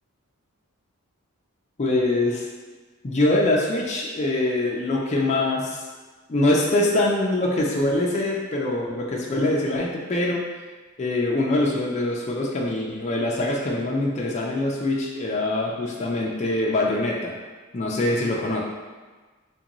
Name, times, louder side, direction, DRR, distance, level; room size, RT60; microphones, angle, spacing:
voice 1, 1.8-2.4 3.0-5.8 6.3-10.4 11.0-17.3 17.7-18.6, left 2 dB, 30° left, -3 dB, 0.4 m, -23 dB
4.4 x 2.5 x 3.0 m, 1.3 s
head